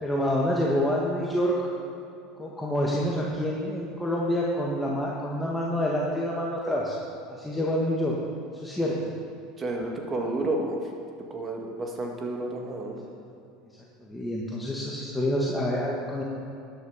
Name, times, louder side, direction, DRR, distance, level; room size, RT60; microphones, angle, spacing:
voice 1, 0.0-1.7 2.4-7.0 7.4-8.1 8.6-8.9 14.1-16.2, equal, 10° left, -4 dB, 1.8 m, -27 dB
voice 2, 9.6-10.8 11.3-13.0, right 2 dB, 30° right, 1 dB, 2.2 m, -31 dB
13.0 x 10.0 x 5.3 m, 2.6 s
hypercardioid pair, 95°, 0 cm